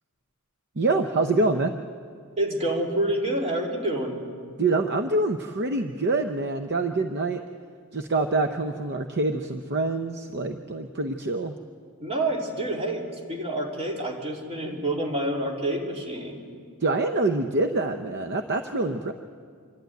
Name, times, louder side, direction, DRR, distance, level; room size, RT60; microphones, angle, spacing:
voice 1, 0.8-1.7 4.6-7.4 7.9-11.5 16.8-19.1, right 2 dB, 50° right, 7 dB, 0.7 m, -25 dB
voice 2, 2.4-4.2 12.0-16.4, right 1 dB, 30° right, -1 dB, 2.9 m, -28 dB
26.5 x 12.0 x 9.2 m, 2.1 s
head